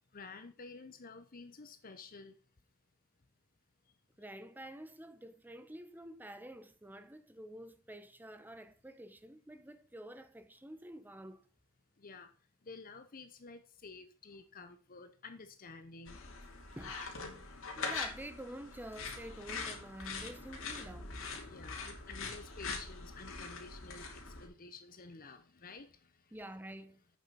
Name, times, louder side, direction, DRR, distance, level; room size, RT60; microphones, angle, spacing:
voice 1, 0.1-2.4 12.0-12.3 12.6-16.2 21.5-26.4, left 4 dB, 40° left, 0.8 m, -51 dB
voice 2, 4.2-11.4 16.8-17.0 17.8-21.1 26.3-27.0, right 1 dB, 10° right, 0.8 m, -48 dB
sound 1, 16.1-24.5, left 4 dB, 65° left, 2.8 m, -43 dB
8.6 x 7.1 x 5.7 m
head